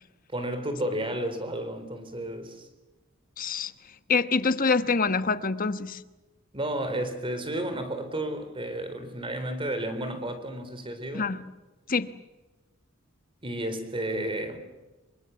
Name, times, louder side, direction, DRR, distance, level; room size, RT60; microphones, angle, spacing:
voice 1, 0.3-2.7 6.5-11.3 13.4-14.6, right 1 dB, 25° right, 4.0 m, -32 dB
voice 2, 3.4-3.7 4.1-6.0 11.1-11.4 11.9-12.1, left 4 dB, 45° left, 1.2 m, -25 dB
27.5 x 24.5 x 7.0 m
head